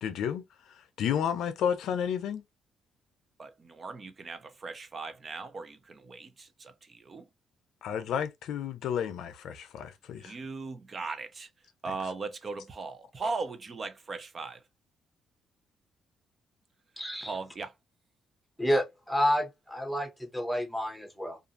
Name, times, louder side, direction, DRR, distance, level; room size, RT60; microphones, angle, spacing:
voice 1, 0.0-0.4 1.0-2.4 7.8-10.3, left 8 dB, 80° left, 0.5 m, -31 dB
voice 2, 3.4-7.3 10.2-11.5 11.8-14.6 17.3-17.7, right 4 dB, 40° right, 0.6 m, -38 dB
voice 3, 17.0-17.3 18.6-21.4, equal, ahead, 0.9 m, -29 dB
2.6 x 2.5 x 2.4 m
cardioid pair, 90°, 0 cm